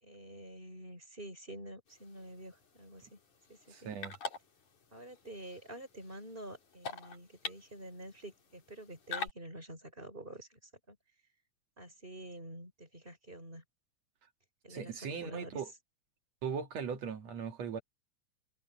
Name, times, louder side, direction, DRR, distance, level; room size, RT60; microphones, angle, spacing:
voice 1, 0.0-3.2 3.5-3.9 4.9-10.6 10.9-11.0 11.8-13.6 14.6-15.6, right 1 dB, 15° right, 5.7 m, -48 dB
sound 1, 1.9-9.3, left 5 dB, 80° left, 5.4 m, -46 dB
voice 2, 3.7-4.1 14.7-15.7 16.4-17.8, right 6 dB, 65° right, 2.7 m, -39 dB
omnidirectional pair, 3.4 m